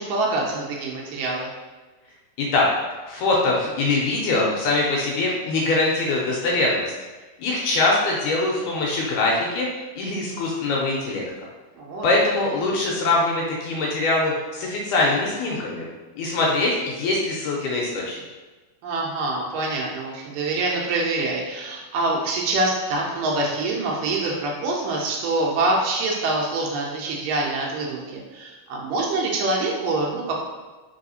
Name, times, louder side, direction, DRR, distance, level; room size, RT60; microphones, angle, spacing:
voice 1, 0.0-1.5 11.8-12.1 18.8-30.4, right 2 dB, 85° right, -2 dB, 2.3 m, -25 dB
voice 2, 3.1-6.9 7.4-9.7 10.0-11.2 12.0-15.9 16.2-18.2, left 2 dB, 80° left, -3 dB, 2.0 m, -23 dB
4.7 x 3.4 x 2.6 m, 1.2 s
omnidirectional pair, 3.9 m